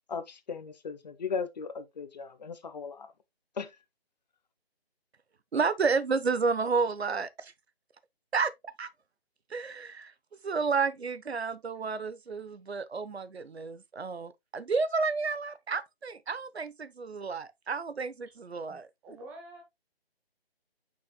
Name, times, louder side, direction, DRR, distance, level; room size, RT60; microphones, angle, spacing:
voice 1, 0.1-3.1 3.6-3.8, left 5 dB, 45° left, 0.8 m, -37 dB
voice 2, 5.5-7.5 8.3-8.5 8.8-8.9 9.5-10.1 10.4-18.9, right 4 dB, 85° right, 1.0 m, -31 dB
voice 3, 18.7-19.6, right 1 dB, 5° right, 0.9 m, -48 dB
7.5 x 5.9 x 2.2 m
figure-of-eight pair, 160°, 31 cm